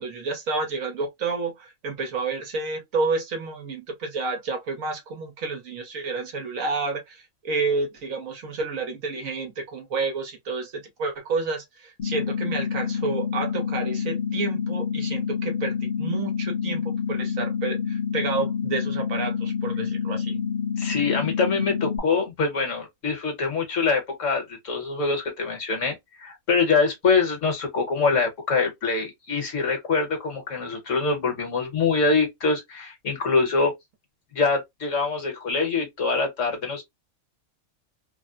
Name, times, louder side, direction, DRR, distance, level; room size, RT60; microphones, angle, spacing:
voice 1, 0.0-20.4, right 4 dB, 70° right, 1.3 m, -30 dB
sound 1, 12.0-22.0, left 7 dB, 45° left, 0.9 m, -28 dB
voice 2, 20.8-33.7 34.3-36.8, left 4 dB, 60° left, 1.5 m, -24 dB
3.4 x 2.1 x 2.4 m
omnidirectional pair, 1.5 m